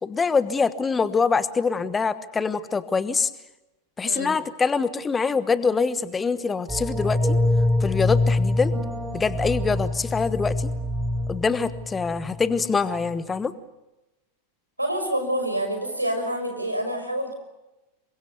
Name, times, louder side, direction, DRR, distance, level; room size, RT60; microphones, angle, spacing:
voice 1, 0.0-3.3 4.0-7.4 7.8-8.7 9.1-10.7 11.3-13.5, left 5 dB, 15° left, 15 dB, 1.2 m, -24 dB
sound 1, 6.7-12.7 13.0-13.1, left 2 dB, 5° right, 4.4 m, -25 dB
voice 2, 14.8-17.3, right 1 dB, 85° right, 5 dB, 5.8 m, -27 dB
28.0 x 24.0 x 6.9 m, 1.0 s
figure-of-eight pair, 90°, 0 cm